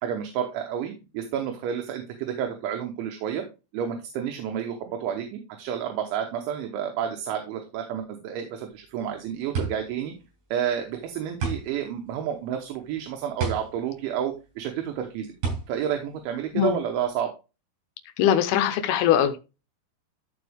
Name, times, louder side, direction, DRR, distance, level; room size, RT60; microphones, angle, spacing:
voice 1, 0.0-3.4 3.7-10.1 10.5-15.3 15.7-17.3, right 9 dB, 80° right, 3.4 m, -30 dB
sound 1, 8.7-17.1, right 4 dB, 55° right, 8.2 m, -33 dB
voice 2, 18.2-19.4, left 10 dB, 90° left, 2.2 m, -21 dB
13.0 x 4.8 x 3.5 m
omnidirectional pair, 5.6 m